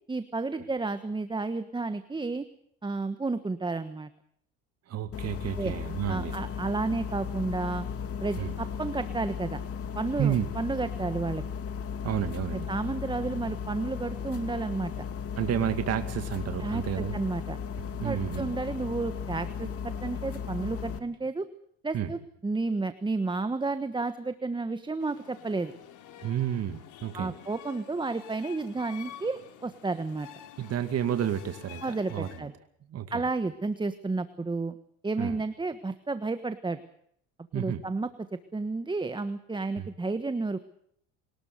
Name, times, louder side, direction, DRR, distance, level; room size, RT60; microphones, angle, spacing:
voice 1, 0.1-2.5 2.8-4.1 5.6-5.7 6.1-7.9 8.2-9.6 9.9-11.4 12.5-14.9 16.6-17.6 18.0-21.4 21.8-25.7 27.1-30.3 31.8-32.5 33.1-34.7 35.0-36.8 37.5-38.1 38.5-40.6, right 3 dB, 15° right, 11 dB, 1.3 m, -31 dB
voice 2, 4.9-6.3 8.4-8.5 10.2-10.5 12.0-12.7 15.4-17.2 18.0-18.5 21.9-22.1 26.2-27.3 30.6-31.8 32.1-32.5 32.9-33.3 35.2-35.4 37.5-37.8 39.8-39.9, right 10 dB, 50° right, 9 dB, 2.2 m, -31 dB
sound 1, 5.1-21.0, left 7 dB, 45° left, 2.6 m, -36 dB
sound 2, 25.0-32.4, left 10 dB, 60° left, 3.2 m, -49 dB
22.5 x 19.5 x 6.7 m, 0.67 s
supercardioid pair, 95°, 33 cm